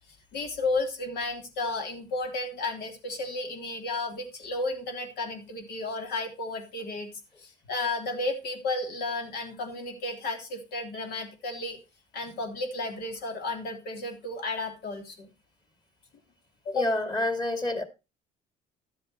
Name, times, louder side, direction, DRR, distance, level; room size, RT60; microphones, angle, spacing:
voice 1, 0.1-7.1 7.4-11.8 12.1-15.3 16.6-16.9, left 2 dB, 75° left, 3.4 m, -33 dB
voice 2, 16.7-17.8, left 1 dB, 25° left, 2.4 m, -28 dB
12.0 x 7.8 x 4.6 m
cardioid pair, 110°, 17 cm